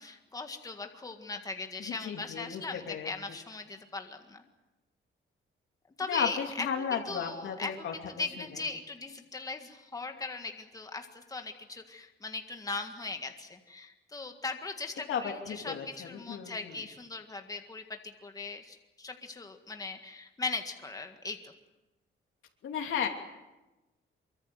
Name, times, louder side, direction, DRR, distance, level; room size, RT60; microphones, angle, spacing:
voice 1, 0.0-4.4 6.0-21.5, left 3 dB, 15° left, 5 dB, 1.8 m, -39 dB
voice 2, 1.8-3.1 6.1-7.9 8.4-8.6 15.1-16.8 22.6-23.1, left 7 dB, 70° left, 2 dB, 3.0 m, -34 dB
24.0 x 23.5 x 7.9 m, 1.1 s
cardioid pair, 160°, 21 cm